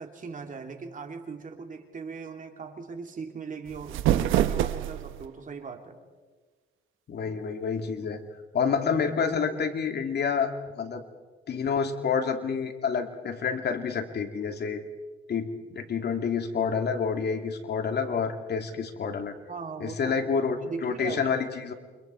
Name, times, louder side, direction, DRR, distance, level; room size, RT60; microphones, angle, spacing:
voice 1, 0.0-6.0 19.5-20.1 20.6-21.3, right 5 dB, 40° right, 4 dB, 3.1 m, -39 dB
sound 1, 3.7-5.3, right 12 dB, 90° right, 1.0 m, -26 dB
voice 2, 7.1-8.2 8.5-11.0 11.5-14.8 15.3-19.3 19.8-21.7, left 6 dB, 55° left, 5 dB, 2.6 m, -28 dB
29.0 x 25.5 x 4.6 m, 1.4 s
cardioid pair, 90°, 20 cm